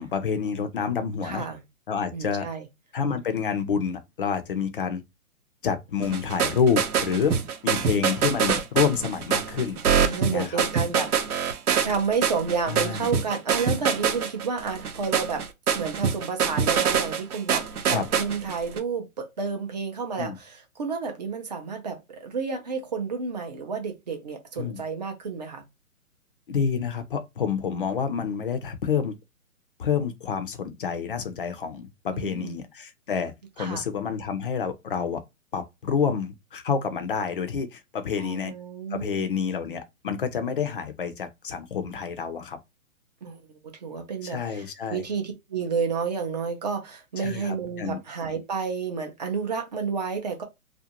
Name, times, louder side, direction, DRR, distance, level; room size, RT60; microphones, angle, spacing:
voice 1, 0.0-1.5 1.9-2.5 2.9-5.0 5.6-7.4 7.6-9.8 10.2-10.6 12.7-13.1 17.9-18.1 20.2-20.4 24.6-24.8 26.5-29.2 29.8-35.2 35.5-38.5 38.9-42.6 44.2-45.0 47.2-48.0, left 6 dB, 40° left, 0.5 m, -28 dB
voice 2, 1.2-1.6 2.1-2.6 9.9-11.1 11.9-15.4 15.7-25.6 32.1-32.5 33.6-33.8 38.2-39.3 43.2-50.4, right 5 dB, 30° right, 0.5 m, -30 dB
sound 1, 6.0-18.8, right 7 dB, 85° right, 0.8 m, -25 dB
2.5 x 2.1 x 2.8 m
hypercardioid pair, 150°, 44 cm